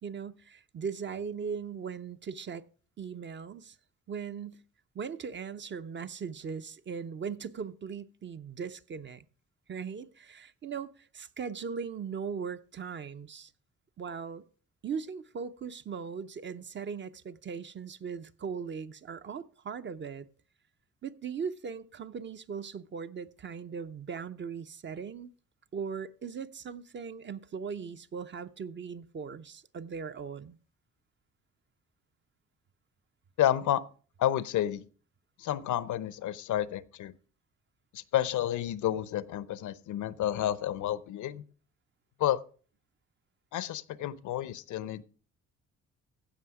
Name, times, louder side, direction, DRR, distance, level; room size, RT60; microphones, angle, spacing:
voice 1, 0.0-2.6 3.0-3.7 4.1-4.6 4.9-9.2 9.7-13.5 14.0-14.4 14.8-20.3 21.0-25.3 25.7-30.6, right 6 dB, 40° right, 0.7 m, -39 dB
voice 2, 33.4-33.8 34.2-34.8 35.4-37.1 37.9-41.4 42.2-42.4 43.5-45.0, left 12 dB, 75° left, 0.7 m, -30 dB
15.5 x 5.6 x 4.8 m
cardioid pair, 90°, 30 cm